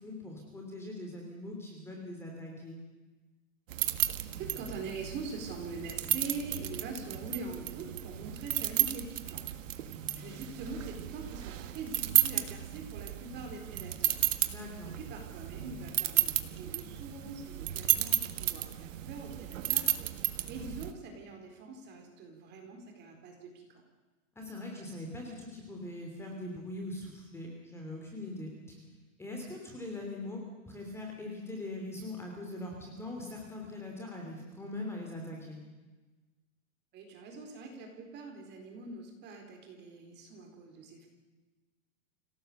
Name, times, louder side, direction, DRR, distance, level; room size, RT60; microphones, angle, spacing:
voice 1, 0.0-2.8 14.5-15.0 24.3-28.8 29.2-35.6, left 1 dB, 5° left, 0 dB, 3.0 m, -42 dB
sound 1, 3.7-20.9, right 13 dB, 65° right, 1.7 m, -33 dB
voice 2, 4.3-14.2 15.0-23.8 36.9-41.1, right 3 dB, 25° right, 3 dB, 4.3 m, -44 dB
27.0 x 17.5 x 6.8 m, 1.2 s
supercardioid pair, 160°, 42 cm